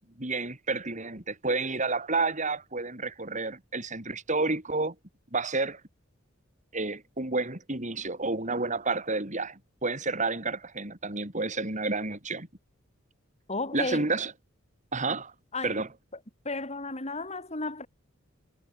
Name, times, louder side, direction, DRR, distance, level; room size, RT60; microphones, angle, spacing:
voice 1, 0.2-5.0 5.3-5.8 6.7-12.5 13.7-14.3 14.9-15.3 15.6-15.9, right 3 dB, 35° right, 5.5 m, -30 dB
voice 2, 13.5-14.1 15.5-15.8 16.1-16.2 16.4-17.9, left 2 dB, 35° left, 6.5 m, -33 dB
head